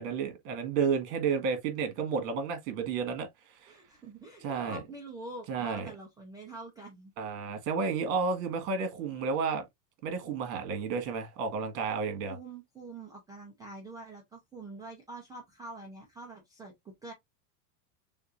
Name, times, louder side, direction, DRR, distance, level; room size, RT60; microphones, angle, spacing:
voice 1, 0.0-3.3 3.6-3.7 4.4-4.8 5.5-5.9 7.2-9.6 10.0-12.4, right 5 dB, 55° right, 1.7 m, -31 dB
voice 2, 3.7-7.1 12.3-17.1, right 2 dB, 10° right, 0.4 m, -45 dB
6.5 x 2.5 x 2.5 m
supercardioid pair, 140°, 49 cm